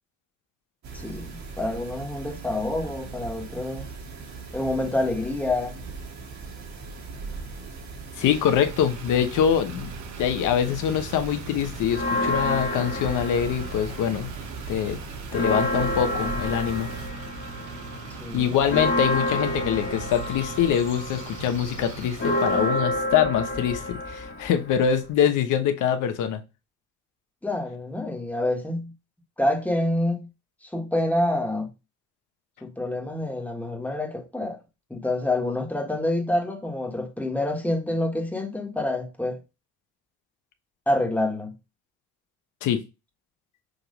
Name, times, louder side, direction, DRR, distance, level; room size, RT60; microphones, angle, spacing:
sound 1, 0.8-17.1, right 4 dB, 65° right, 1.8 m, -39 dB
voice 1, 0.9-3.9 4.5-5.8 18.2-18.5 27.4-28.9 29.4-30.3 30.6-31.7 32.6-34.6 34.9-39.4 40.9-41.5, left 1 dB, 5° left, 1.6 m, -27 dB
Motor vehicle (road), 8.1-22.7, right 4 dB, 85° right, 1.2 m, -39 dB
voice 2, 8.2-9.9 10.2-14.3 14.7-15.0 15.3-16.9 18.3-26.4 42.6-42.8, left 9 dB, 85° left, 1.1 m, -24 dB
Church bell, 11.9-14.3 14.6-14.7 15.1-25.1, left 1 dB, 40° left, 1.7 m, -29 dB
6.6 x 3.0 x 5.2 m
cardioid pair, 90°, 30 cm